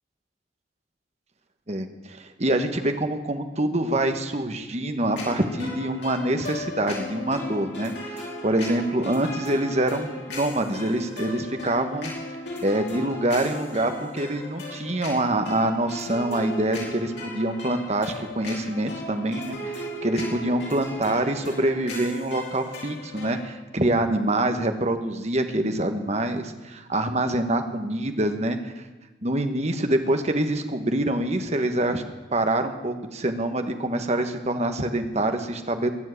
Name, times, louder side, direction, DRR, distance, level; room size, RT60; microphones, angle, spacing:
voice 1, 1.7-12.1 12.6-28.7 29.2-32.0 32.3-35.9, right 1 dB, 40° right, 7 dB, 1.4 m, -25 dB
sound 1, 5.1-23.5, left 2 dB, 85° left, 5.3 m, -37 dB
21.5 x 7.6 x 8.4 m, 1.2 s
head